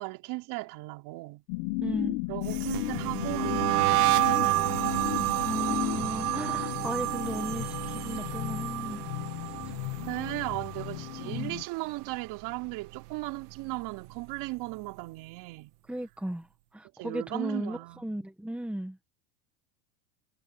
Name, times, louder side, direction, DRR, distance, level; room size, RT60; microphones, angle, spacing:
voice 1, 0.0-1.4 2.3-4.4 10.0-15.7 16.9-18.3, right 22 dB, 55° right, 4.5 m, -37 dB
sound 1, 1.5-11.6, left 23 dB, 60° left, 1.6 m, -35 dB
voice 2, 1.8-2.2 5.4-9.0 11.2-11.6 15.9-16.5 16.7-19.0, right 1 dB, 5° right, 1.7 m, -35 dB
sound 2, 2.4-11.6 11.9-12.3 12.7-14.2, right 20 dB, 75° right, 1.9 m, -30 dB
supercardioid pair, 115°, 46 cm